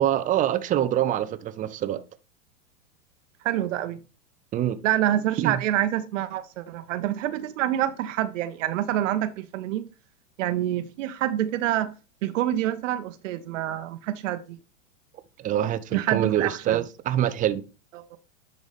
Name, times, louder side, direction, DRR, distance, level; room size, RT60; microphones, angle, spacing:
voice 1, 0.0-2.0 4.5-4.8 5.4-5.6 15.4-17.6, right 11 dB, 20° right, 0.4 m, -25 dB
voice 2, 3.4-4.0 4.8-9.8 10.4-11.9 12.2-14.6 15.9-16.8 17.9-18.2, right 12 dB, 65° right, 0.8 m, -27 dB
10.5 x 4.0 x 3.4 m
hypercardioid pair, 110°, 41 cm